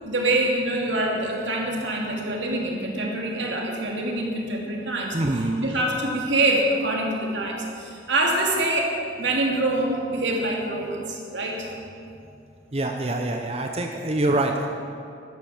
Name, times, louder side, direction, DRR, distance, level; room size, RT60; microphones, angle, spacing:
voice 1, 0.0-5.2 5.6-8.9 9.2-11.7, right 2 dB, 85° right, -1 dB, 2.8 m, -25 dB
voice 2, 5.1-5.7 12.7-14.7, right 2 dB, 35° right, 3 dB, 0.8 m, -25 dB
12.0 x 12.0 x 7.2 m, 2.5 s
head